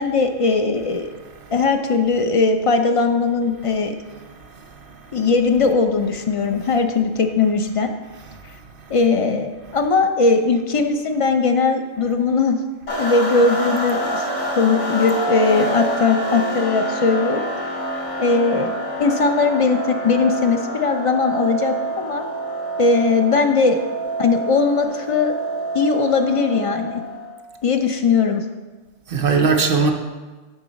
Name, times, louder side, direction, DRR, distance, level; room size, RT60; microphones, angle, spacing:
voice 1, 0.0-1.1 1.5-3.9 5.1-7.9 8.9-12.6 13.0-14.3 14.6-17.5 18.2-22.2 22.8-23.8 24.2-25.3 25.7-27.0 27.6-28.4, left 4 dB, 55° left, 0.3 m, -19 dB
voice 2, 1.2-1.7 3.6-3.8 4.1-5.3 6.7-6.8 8.1-9.1 9.7-9.9 29.1-29.9, right 4 dB, 55° right, 0.8 m, -24 dB
sound 1, 12.9-27.4, right 1 dB, 75° left, 1.9 m, -27 dB
10.0 x 3.9 x 5.1 m
omnidirectional pair, 1.3 m